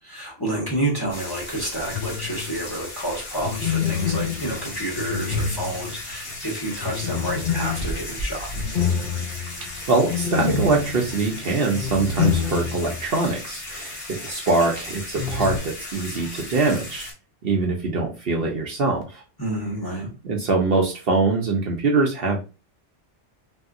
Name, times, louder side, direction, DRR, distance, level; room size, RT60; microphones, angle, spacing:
voice 1, 0.0-8.5 19.4-20.1, right 1 dB, 20° left, -3 dB, 1.1 m, -29 dB
sound 1, 1.1-17.1, left 1 dB, 75° left, 1.4 m, -35 dB
sound 2, 1.9-2.6 3.4-6.2 6.8-13.0 13.3-13.4 15.2-15.6, left 7 dB, 55° left, 0.6 m, -27 dB
voice 2, 9.9-17.1 17.4-19.2 20.2-22.5, right 3 dB, 60° right, 1 dB, 0.8 m, -23 dB
3.4 x 2.7 x 2.4 m, 0.31 s
omnidirectional pair, 1.2 m